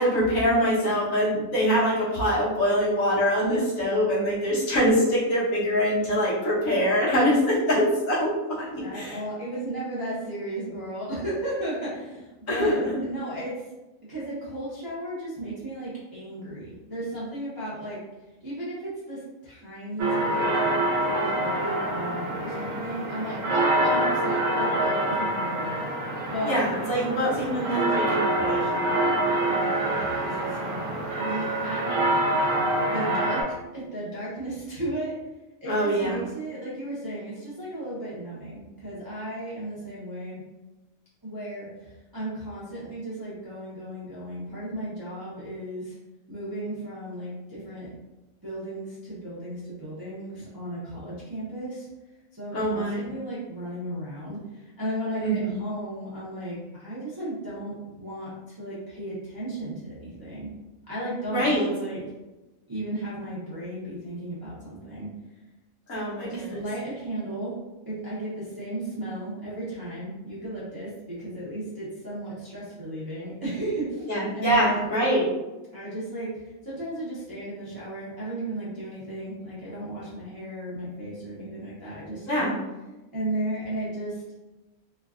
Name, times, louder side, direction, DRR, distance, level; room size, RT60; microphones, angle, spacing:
voice 1, 0.0-8.3 8.6-9.2 12.5-13.0 26.4-28.6 35.7-36.3 52.5-53.0 55.2-55.5 61.3-61.7 65.9-66.5 74.1-75.3 82.3-82.5, equal, 70° left, -7 dB, 1.4 m, -24 dB
voice 2, 8.8-13.6 14.1-18.0 18.4-20.5 21.1-25.7 26.2-32.1 32.8-35.1 35.6-40.4 41.2-45.9 46.3-47.9 48.4-51.9 52.3-60.5 60.9-62.0 62.7-65.1 66.2-67.5 67.9-74.9 75.7-82.5 83.1-84.2, right 1 dB, 25° right, -10 dB, 0.5 m, -35 dB
sound 1, 20.0-33.4, right 1 dB, 75° right, 0.9 m, -26 dB
3.1 x 2.2 x 2.4 m, 1.1 s
omnidirectional pair, 1.4 m